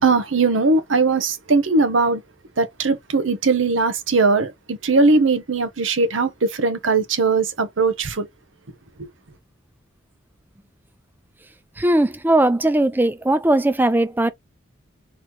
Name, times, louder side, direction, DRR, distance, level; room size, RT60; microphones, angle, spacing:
voice 1, 0.0-2.2 2.6-8.3 9.0-9.1, right 3 dB, 80° right, 0.9 m, -19 dB
voice 2, 11.8-14.3, right 1 dB, 10° right, 0.4 m, -18 dB
4.1 x 3.0 x 3.1 m
head